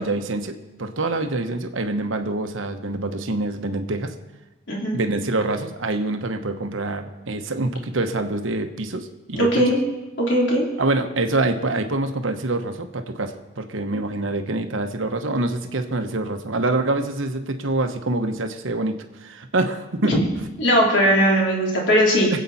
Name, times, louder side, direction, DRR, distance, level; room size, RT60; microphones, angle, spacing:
voice 1, 0.0-4.1 4.9-9.6 10.8-20.2 22.3-22.4, right 2 dB, 75° right, 6 dB, 1.1 m, -25 dB
voice 2, 9.3-9.8 10.2-10.7 20.0-20.2 20.6-22.4, equal, 65° left, -2 dB, 3.4 m, -19 dB
24.0 x 8.4 x 4.2 m, 1.1 s
head